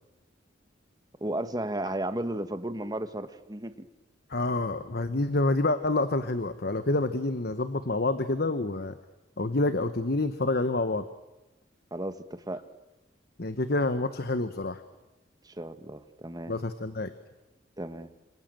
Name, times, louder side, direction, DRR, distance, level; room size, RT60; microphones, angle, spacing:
voice 1, 1.2-3.9 11.9-12.6 15.4-16.5 17.8-18.1, right 1 dB, 20° right, 10 dB, 1.5 m, -34 dB
voice 2, 4.3-8.9 9.4-11.0 13.4-14.8 16.5-17.1, left 2 dB, 55° left, 10 dB, 1.2 m, -28 dB
27.5 x 26.5 x 7.8 m, 1.0 s
head